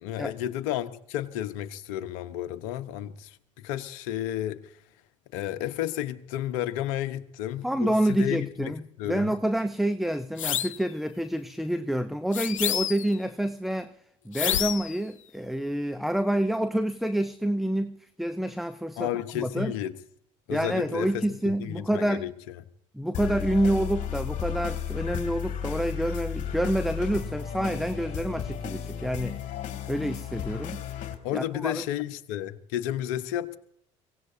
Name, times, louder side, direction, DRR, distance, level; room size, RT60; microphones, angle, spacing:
voice 1, 0.0-3.4 3.6-4.7 5.3-8.7 9.0-9.3 19.0-19.9 20.5-21.2 21.6-22.3 31.2-33.6, left 12 dB, 70° left, 1.1 m, -32 dB
voice 2, 7.6-13.9 14.2-19.7 20.5-22.3 22.9-29.4 29.9-30.8 31.3-31.8, right 1 dB, ahead, 0.8 m, -28 dB
sound 1, 10.4-10.8 12.3-13.2 14.3-15.0, left 10 dB, 85° left, 0.5 m, -28 dB
sound 2, 23.1-31.1, left 8 dB, 50° left, 2.8 m, -33 dB
23.0 x 17.5 x 2.8 m
hypercardioid pair, 60°, 16 cm